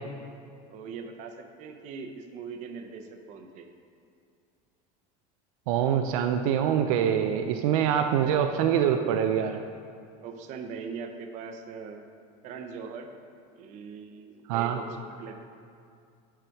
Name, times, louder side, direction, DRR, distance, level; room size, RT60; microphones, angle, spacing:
voice 1, 0.7-3.7 8.1-8.3 10.2-12.0 12.4-13.1 13.6-15.4, right 5 dB, 45° right, 6 dB, 0.6 m, -41 dB
voice 2, 5.7-9.6 14.5-14.8, right 9 dB, 90° right, 6 dB, 0.4 m, -24 dB
7.7 x 4.9 x 4.6 m, 2.4 s
cardioid pair, 160°, 17 cm